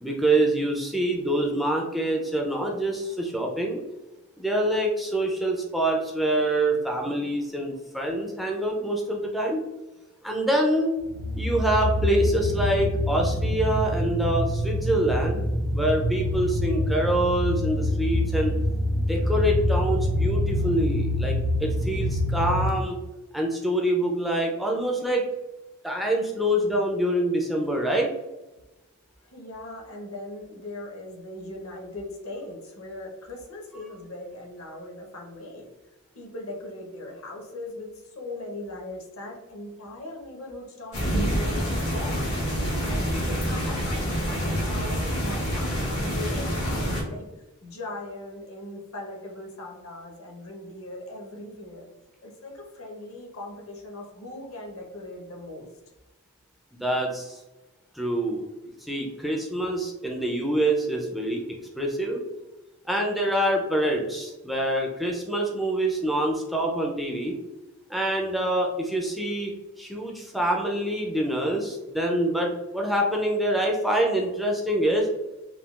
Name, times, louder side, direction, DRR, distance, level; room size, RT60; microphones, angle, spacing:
voice 1, 0.0-3.8 4.4-9.6 10.2-10.9 11.3-15.4 15.7-18.6 18.9-23.0 23.3-25.2 25.8-28.1 56.7-57.4 58.0-58.5 58.9-61.4 61.8-62.2 62.9-67.4 67.9-69.5 69.8-75.1, right 1 dB, ahead, -1 dB, 0.3 m, -25 dB
sound 1, 11.0-22.7, left 1 dB, 85° right, 0.5 m, -26 dB
voice 2, 29.2-35.7 36.1-42.2 42.8-47.3 47.6-51.9 52.2-55.7, left 2 dB, 65° left, 0 dB, 0.8 m, -39 dB
sound 2, 40.9-47.0, equal, 85° left, 1.3 m, -27 dB
3.6 x 2.3 x 2.3 m, 1.1 s
head